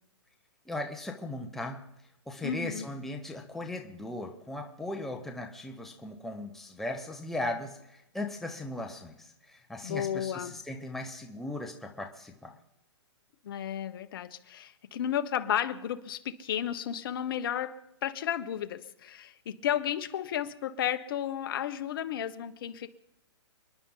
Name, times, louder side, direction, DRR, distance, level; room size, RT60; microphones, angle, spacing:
voice 1, 0.7-1.8 2.3-12.5, left 2 dB, ahead, 2 dB, 1.1 m, -38 dB
voice 2, 2.4-2.9 9.8-10.6 13.4-22.9, left 10 dB, 50° left, 9 dB, 1.3 m, -33 dB
30.0 x 10.5 x 4.0 m, 0.90 s
hypercardioid pair, 155°, 15 cm